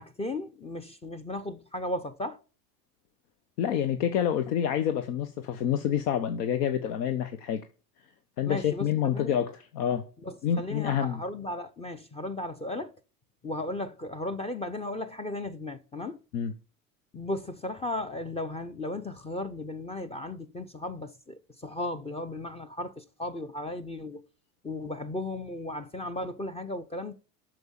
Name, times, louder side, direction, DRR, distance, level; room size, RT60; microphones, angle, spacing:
voice 1, 0.0-2.4 8.5-9.4 10.2-13.0 13.4-16.2 17.1-24.2 24.6-27.1, left 1 dB, 15° left, 0.6 m, -35 dB
voice 2, 3.6-7.6 8.4-10.1 10.4-11.2 16.3-16.5, left 9 dB, 70° left, 1.1 m, -28 dB
8.0 x 6.5 x 7.2 m
supercardioid pair, 110°, 48 cm